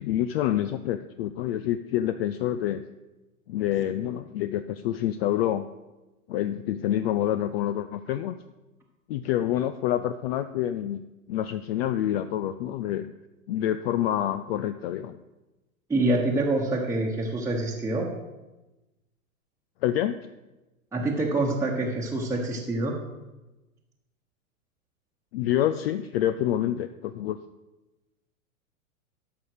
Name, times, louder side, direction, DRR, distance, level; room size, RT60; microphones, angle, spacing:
voice 1, 0.0-2.8 3.5-5.7 6.3-8.3 9.1-13.1 13.5-15.2 19.8-20.2 25.3-27.4, left 12 dB, 45° left, 11 dB, 0.5 m, -27 dB
voice 2, 15.9-18.1 20.9-22.9, right 2 dB, 5° right, -2 dB, 1.2 m, -26 dB
13.0 x 5.5 x 4.9 m, 1.1 s
hypercardioid pair, 105°, 42 cm